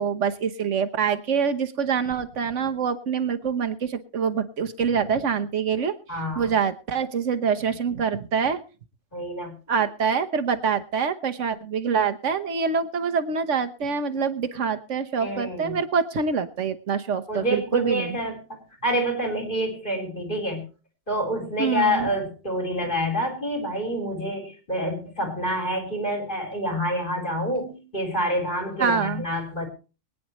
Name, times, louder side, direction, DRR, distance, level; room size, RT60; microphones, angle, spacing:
voice 1, 0.0-5.9 6.4-8.6 9.7-18.2 21.6-22.1 28.8-29.2, right 6 dB, 75° right, 8 dB, 1.4 m, -25 dB
voice 2, 6.1-6.5 9.1-9.5 15.2-15.8 17.3-20.6 21.1-29.7, equal, 40° left, 2 dB, 4.1 m, -27 dB
23.5 x 9.5 x 3.1 m, 0.33 s
omnidirectional pair, 1.3 m